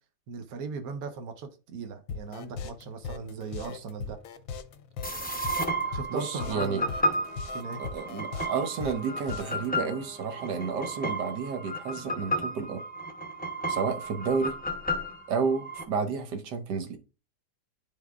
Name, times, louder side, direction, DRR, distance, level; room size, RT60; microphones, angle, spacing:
voice 1, 0.3-4.2 5.9-6.9 7.5-7.8, right 5 dB, 65° right, 1.3 m, -38 dB
sound 1, 2.1-9.7, left 6 dB, 65° left, 0.9 m, -39 dB
sound 2, 5.0-15.8, right 1 dB, 15° left, 0.3 m, -33 dB
Trumpet, 5.8-11.4, right 1 dB, 45° right, 2.0 m, -52 dB
voice 2, 6.1-6.8 7.8-12.8 13.7-14.6 15.3-17.0, right 5 dB, 85° right, 1.5 m, -31 dB
10.5 x 3.9 x 2.4 m
omnidirectional pair, 1.8 m